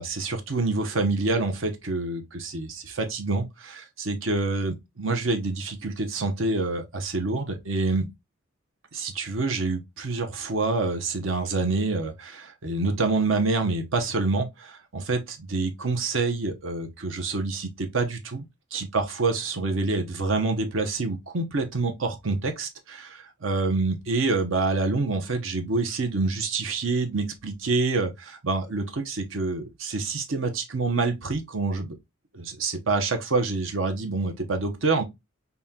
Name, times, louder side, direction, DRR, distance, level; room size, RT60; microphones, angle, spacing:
voice 1, 0.0-8.1 8.9-18.4 18.7-31.9 32.3-35.0, right 3 dB, 70° right, 0.9 m, -27 dB
5.5 x 2.3 x 2.7 m
head